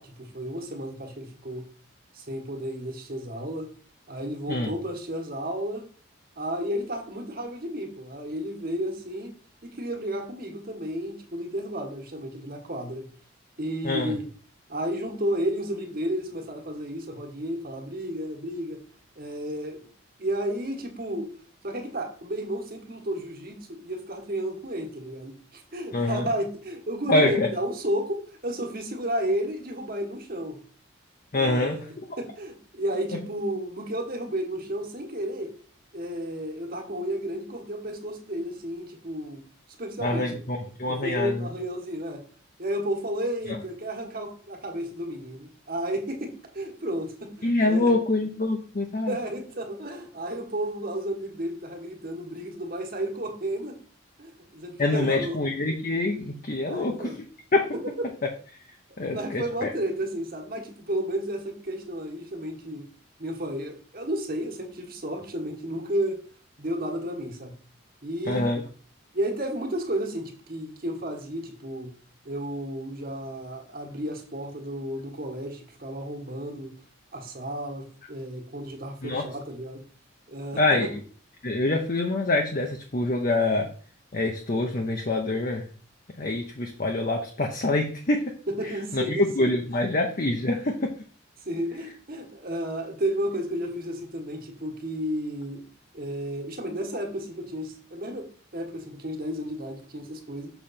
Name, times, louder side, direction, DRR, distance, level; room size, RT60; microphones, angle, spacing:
voice 1, 0.0-1.7 2.1-3.7 4.1-5.9 6.4-9.4 9.6-13.0 13.6-14.2 14.7-18.8 19.2-19.8 20.2-21.3 21.6-30.6 31.3-35.5 35.9-39.4 39.8-40.4 40.9-42.2 42.6-47.9 49.1-53.8 54.2-55.4 56.6-57.2 57.7-57.8 59.1-62.9 63.2-66.2 66.6-67.5 68.0-68.5 69.1-71.9 72.2-76.7 77.1-79.8 80.3-80.9 88.5-89.5 91.4-95.6 95.9-100.5, equal, 45° right, 2 dB, 1.5 m, -32 dB
voice 2, 25.9-26.3 27.1-27.5 31.3-31.8 33.1-33.2 40.0-41.4 47.4-49.1 54.8-57.1 57.5-57.7 59.0-59.7 68.3-68.6 79.0-79.3 80.6-80.9 81.4-83.7 84.1-85.7 86.2-88.3 88.9-90.9, left 2 dB, 40° left, 3 dB, 0.7 m, -25 dB
6.9 x 3.3 x 5.7 m, 0.42 s
head